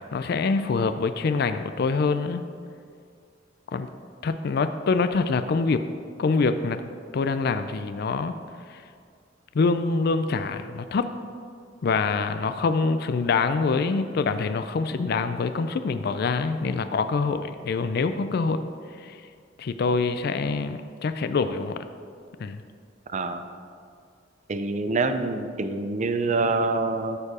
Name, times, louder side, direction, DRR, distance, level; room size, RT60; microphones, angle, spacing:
voice 1, 0.1-2.4 3.7-3.9 4.2-5.8 6.2-6.8 7.1-8.3 9.6-11.1 11.8-18.7 19.0-19.2 19.6-21.8 22.4-22.6, left 4 dB, 55° left, 10 dB, 0.4 m, -25 dB
voice 2, 23.1-23.4 24.5-27.2, right 3 dB, 40° right, 8 dB, 0.5 m, -26 dB
13.5 x 4.6 x 4.9 m, 2.2 s
head